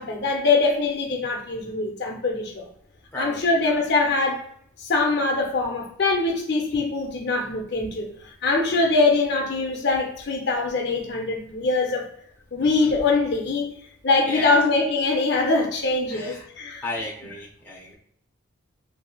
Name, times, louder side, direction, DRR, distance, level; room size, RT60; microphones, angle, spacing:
voice 1, 0.0-2.6 3.2-4.5 4.8-8.1 8.4-12.1 12.5-13.7 14.0-16.8, left 3 dB, 55° left, 1 dB, 0.6 m, -23 dB
voice 2, 3.1-3.9 8.7-8.8 12.6-12.9 14.3-14.6 16.1-16.4 16.8-17.9, left 2 dB, 10° left, -4 dB, 0.7 m, -34 dB
3.1 x 2.7 x 2.3 m, 0.67 s
head